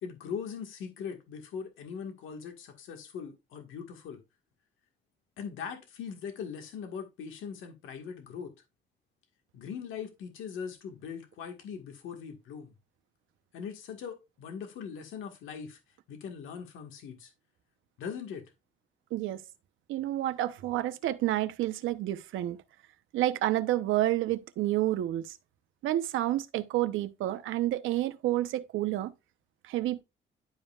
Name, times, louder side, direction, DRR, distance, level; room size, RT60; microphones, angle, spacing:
voice 1, 0.0-4.2 5.4-8.5 9.5-12.7 13.5-15.8 16.1-17.3 18.0-18.5, left 7 dB, 85° left, 1.7 m, -40 dB
voice 2, 19.1-19.4 19.9-22.6 23.1-25.4 25.8-29.1 29.6-30.0, right 14 dB, 90° right, 0.8 m, -29 dB
11.0 x 5.3 x 2.4 m
cardioid pair, 90°, 20 cm